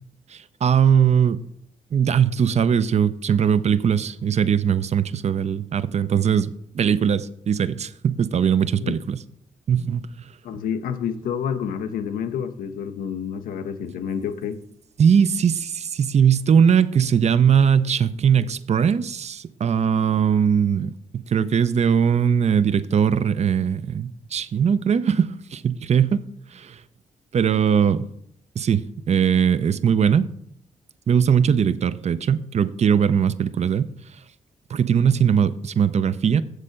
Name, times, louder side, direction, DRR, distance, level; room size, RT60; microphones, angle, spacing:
voice 1, 0.3-1.4 1.9-9.2 9.7-10.0 15.0-26.2 26.5-26.8 27.3-28.1 28.6-28.8 29.1-30.3 31.1-33.9 34.7-36.4, right 7 dB, 50° right, 0.5 m, -20 dB
voice 2, 10.4-14.6, left 7 dB, 90° left, 0.6 m, -29 dB
7.4 x 6.5 x 5.1 m
supercardioid pair, 55°, 14 cm